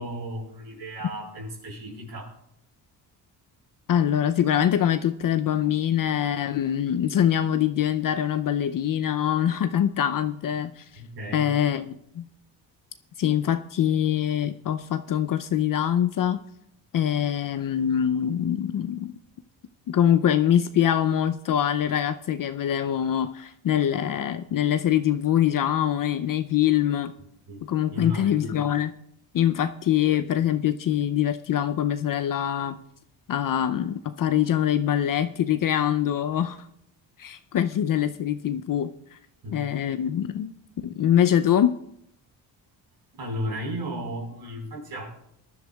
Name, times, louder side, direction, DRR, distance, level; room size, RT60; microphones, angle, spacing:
voice 1, 0.0-2.3 10.9-11.5 27.5-27.7 27.9-28.7 39.4-39.7 43.1-45.2, equal, 60° right, 0 dB, 4.6 m, -34 dB
voice 2, 3.9-10.9 11.3-12.3 13.2-16.4 16.9-19.1 19.9-27.1 27.6-28.9 29.3-32.8 33.3-36.7 37.2-39.2 39.5-40.5 40.8-41.8, left 10 dB, 50° left, 10 dB, 0.6 m, -24 dB
21.0 x 11.0 x 2.3 m, 0.73 s
cardioid pair, 85°, 44 cm